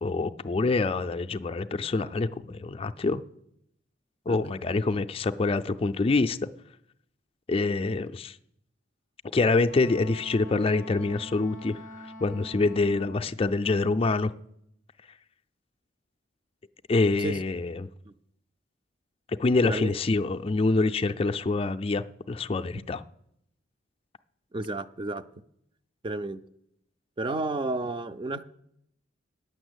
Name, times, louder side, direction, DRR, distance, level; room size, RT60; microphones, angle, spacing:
voice 1, 0.0-3.2 4.3-6.4 7.5-8.3 9.3-11.8 12.2-14.3 16.9-17.9 19.4-23.0, left 3 dB, 30° left, 0.4 m, -26 dB
Wind instrument woodwind instrument, 9.6-13.3, equal, 70° right, 2.2 m, -44 dB
voice 2, 24.5-25.2 26.0-26.4 27.2-28.4, right 2 dB, 25° right, 0.4 m, -31 dB
9.2 x 6.8 x 8.1 m
head